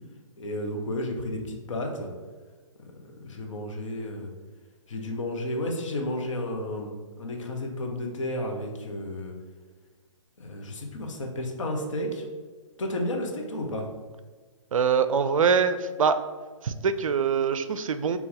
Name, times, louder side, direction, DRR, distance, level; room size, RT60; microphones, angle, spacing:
voice 1, 0.4-2.1 2.8-2.9 3.2-4.3 4.9-9.3 10.4-12.2 12.8-13.9, left 1 dB, 65° left, 2 dB, 0.9 m, -32 dB
voice 2, 14.7-16.2 16.6-18.2, right 6 dB, 75° right, 11 dB, 0.4 m, -23 dB
4.1 x 2.9 x 3.9 m, 1.4 s
hypercardioid pair, 135°, 17 cm